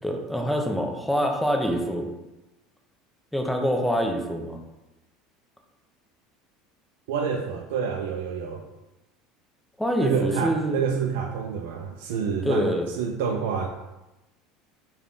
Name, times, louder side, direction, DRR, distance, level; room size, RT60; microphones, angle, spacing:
voice 1, 0.0-2.1 3.3-4.6 9.8-10.8 12.4-12.8, equal, ahead, 2 dB, 0.4 m, -25 dB
voice 2, 7.1-8.6 10.0-13.7, right 6 dB, 85° right, 2 dB, 0.3 m, -28 dB
3.5 x 2.2 x 3.8 m, 1.0 s
cardioid pair, 150°, 0 cm